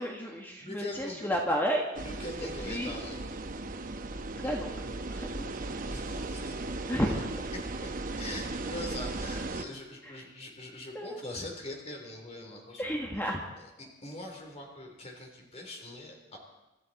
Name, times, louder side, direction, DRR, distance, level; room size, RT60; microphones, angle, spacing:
voice 1, 0.0-1.9 2.6-2.9 4.4-4.7 5.1-5.5 6.9-7.2 10.0-10.2 10.9-11.2 12.8-13.4, equal, 10° left, 0 dB, 1.4 m, -32 dB
voice 2, 0.6-1.3 2.0-3.2 5.9-6.6 7.8-12.8 13.6-16.4, left 1 dB, 35° left, 1 dB, 3.4 m, -42 dB
sound 1, 1.9-9.6, right 2 dB, 45° right, 0.9 m, -37 dB
26.5 x 12.5 x 4.1 m, 0.99 s
head